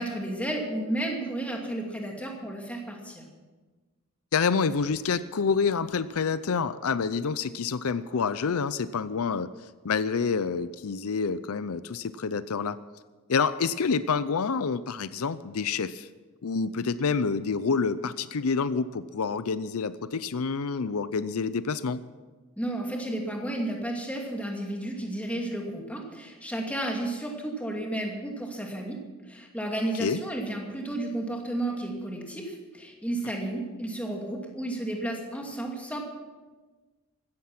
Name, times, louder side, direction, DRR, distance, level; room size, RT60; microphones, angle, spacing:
voice 1, 0.0-3.2 22.6-29.0 29.3-36.0, right 1 dB, 5° left, 0 dB, 2.5 m, -32 dB
voice 2, 4.3-9.5 9.8-12.8 13.3-16.1 16.4-22.0 29.9-30.2, left 5 dB, 80° left, 15 dB, 0.5 m, -28 dB
16.0 x 13.5 x 6.0 m, 1.3 s
head